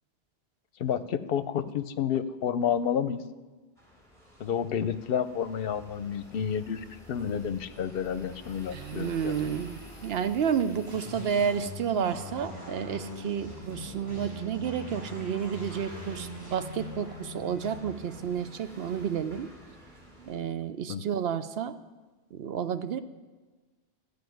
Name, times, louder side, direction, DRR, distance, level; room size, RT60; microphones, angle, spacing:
voice 1, 0.8-3.2 4.4-9.5 20.9-21.0, left 8 dB, 65° left, 13 dB, 0.8 m, -30 dB
sound 1, 3.8-20.4, left 1 dB, 5° left, 3.5 m, -51 dB
voice 2, 8.7-19.5 20.2-21.8 22.3-23.0, right 7 dB, 75° right, 11 dB, 0.9 m, -31 dB
sound 2, 10.8-20.3, left 1 dB, 15° right, 4.4 m, -42 dB
13.5 x 5.2 x 9.2 m, 1.3 s
omnidirectional pair, 1.0 m